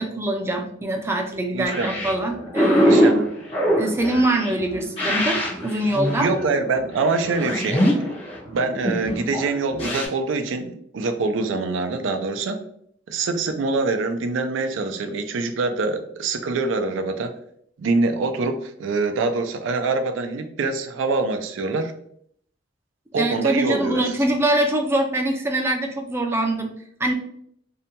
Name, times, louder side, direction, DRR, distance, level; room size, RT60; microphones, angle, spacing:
voice 1, 0.0-3.1 3.8-6.3 23.1-27.1, right 1 dB, 15° right, 3 dB, 0.3 m, -24 dB
voice 2, 1.5-1.9 2.8-3.3 3.8-4.0 6.2-8.0 8.5-12.6 13.1-17.3 17.8-21.9 23.1-24.0, right 3 dB, 85° right, 6 dB, 0.4 m, -24 dB
sound 1, 1.7-10.1, equal, 30° left, 0.7 m, -23 dB
2.7 x 2.1 x 2.8 m, 0.68 s
head